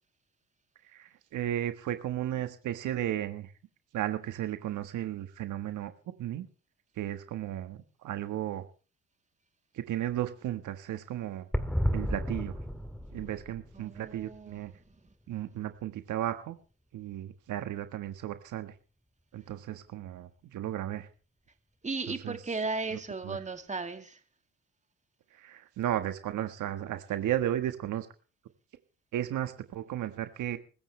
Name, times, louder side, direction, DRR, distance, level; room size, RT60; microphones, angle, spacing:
voice 1, 0.9-3.5 3.9-6.5 7.0-8.7 9.7-11.5 11.9-12.6 13.1-14.7 15.3-16.6 16.9-18.7 19.3-21.1 22.2-22.4 22.9-23.4 25.3-28.1 29.1-30.6, right 12 dB, 80° right, 9 dB, 1.5 m, -34 dB
sound 1, 11.5-15.3 15.6-15.7 15.8-15.9, equal, 5° left, 2.3 m, -33 dB
voice 2, 13.7-15.0 21.8-24.2, right 3 dB, 25° right, 7 dB, 2.5 m, -36 dB
24.5 x 14.5 x 3.3 m, 0.36 s
cardioid pair, 90°, 30 cm